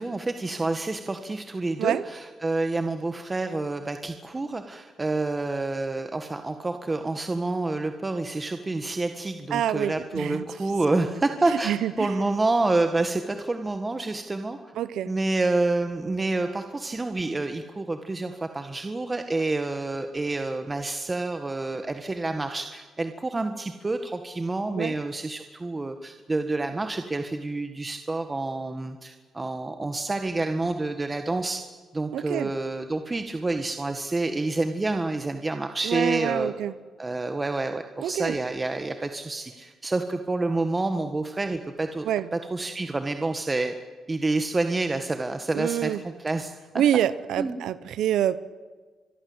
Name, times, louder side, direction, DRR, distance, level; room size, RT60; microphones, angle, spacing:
voice 1, 0.0-14.7 15.1-31.6 31.9-36.5 37.0-42.1 42.3-43.7 44.1-46.8 47.4-47.6, right 2 dB, 25° right, 7 dB, 1.7 m, -28 dB
voice 2, 9.5-10.4 11.5-12.1 14.8-15.1 24.7-24.9 32.1-32.5 35.8-36.7 38.0-38.4 42.0-42.3 45.5-46.0 46.8-48.4, right 11 dB, 80° right, 16 dB, 0.9 m, -26 dB
26.0 x 22.5 x 8.1 m, 1.4 s
cardioid pair, 75°, 0 cm